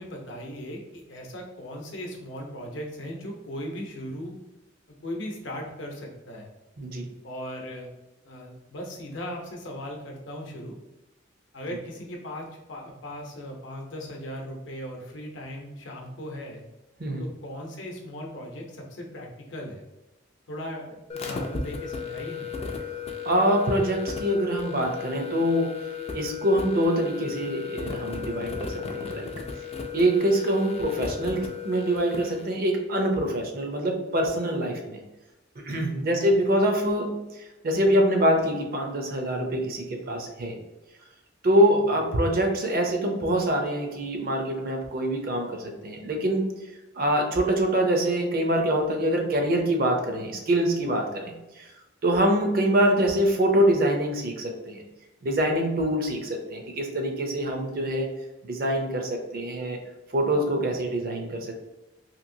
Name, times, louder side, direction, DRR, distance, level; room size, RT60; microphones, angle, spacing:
voice 1, 0.0-4.4 5.0-6.5 7.2-7.9 8.2-10.8 11.5-16.7 17.2-19.8 20.5-22.5 36.0-36.2 41.7-41.8, equal, 70° left, 1 dB, 0.7 m, -38 dB
voice 2, 6.8-7.1 17.0-17.2 23.2-29.3 29.9-35.0 35.6-40.6 41.4-51.7 52.0-54.8 55.2-58.1 58.4-59.8 60.1-61.6, right 1 dB, 50° right, 3 dB, 0.5 m, -25 dB
sound 1, 21.1-32.4, left 6 dB, 30° left, 0.3 m, -35 dB
2.9 x 2.7 x 2.6 m, 1.0 s
head